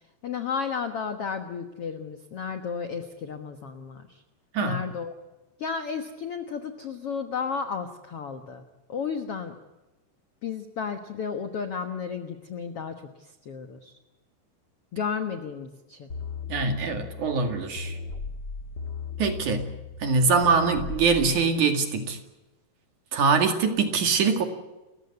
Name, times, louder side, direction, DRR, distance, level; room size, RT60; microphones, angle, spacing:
voice 1, 0.2-4.2 4.6-5.1 5.6-8.6 8.9-9.5 10.4-13.9 14.9-16.1, left 6 dB, 70° left, 7 dB, 1.4 m, -33 dB
sound 1, 16.1-21.4, left 4 dB, 50° left, 1.2 m, -37 dB
voice 2, 16.5-18.0 19.2-19.7 20.0-22.2 23.1-24.4, right 5 dB, 50° right, 6 dB, 3.3 m, -23 dB
30.0 x 15.0 x 9.7 m, 1.0 s
omnidirectional pair, 4.8 m